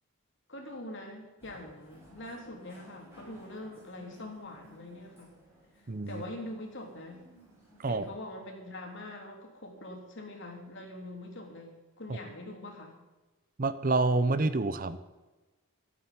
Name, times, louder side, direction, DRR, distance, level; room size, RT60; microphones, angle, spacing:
voice 1, 0.5-5.3 5.7-7.2 7.9-13.0, left 1 dB, 55° left, 1 dB, 3.4 m, -44 dB
sound 1, 1.4-8.1, equal, 10° right, 6.8 m, -57 dB
voice 2, 5.9-6.2 7.8-8.0 13.6-15.0, right 3 dB, 40° right, 13 dB, 0.7 m, -28 dB
13.0 x 8.9 x 9.9 m, 1.2 s
head